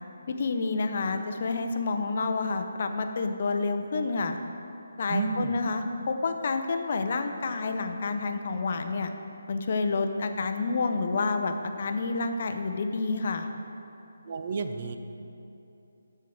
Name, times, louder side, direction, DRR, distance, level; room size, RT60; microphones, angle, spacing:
voice 1, 0.3-4.4 5.0-9.1 9.5-13.5, left 3 dB, 45° left, 6 dB, 0.6 m, -29 dB
voice 2, 5.1-5.6 14.2-15.0, right 5 dB, 40° right, 7 dB, 0.5 m, -31 dB
10.5 x 4.5 x 6.2 m, 2.9 s
hypercardioid pair, 165°, 0 cm